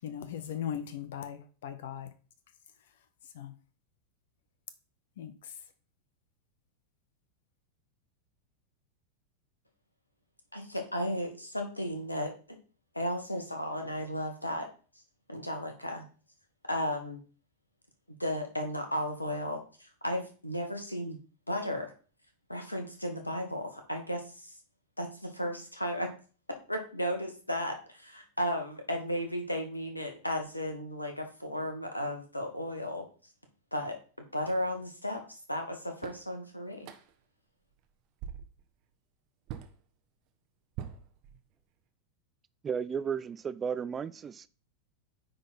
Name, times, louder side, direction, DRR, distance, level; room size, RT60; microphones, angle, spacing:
voice 1, 0.0-2.1 3.4-3.5 5.2-5.3, left 9 dB, 60° left, 0.7 m, -38 dB
voice 2, 10.5-12.3 12.9-14.6 15.3-16.0 16.7-17.2 18.2-21.2 21.5-21.9 22.5-24.6 25.0-26.1 26.7-33.0 33.7-33.9 34.3-36.9, equal, 85° left, 1.5 m, -34 dB
sound 1, 34.4-34.7 35.6-35.7 36.0-36.3 36.8-37.2 37.7-37.9 38.2-38.6 39.5-39.8 40.7-41.7, right 9 dB, 40° right, 1.0 m, -43 dB
voice 3, 42.6-44.5, right 7 dB, 20° right, 0.4 m, -34 dB
9.5 x 4.0 x 4.2 m
figure-of-eight pair, 90°, 0 cm